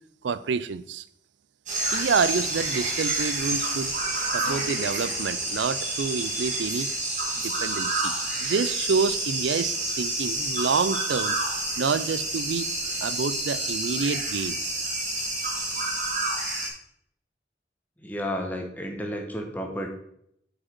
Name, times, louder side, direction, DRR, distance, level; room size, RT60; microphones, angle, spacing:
voice 1, 0.2-1.0 1.9-3.9 4.3-6.9 7.4-11.4 11.8-12.7 13.0-14.9, right 5 dB, 90° right, 15 dB, 0.4 m, -28 dB
sound 1, 1.7-16.7, right 2 dB, 45° right, 2.1 m, -29 dB
voice 2, 18.0-19.9, equal, 10° left, 2 dB, 1.1 m, -32 dB
8.4 x 5.2 x 4.4 m, 0.72 s
head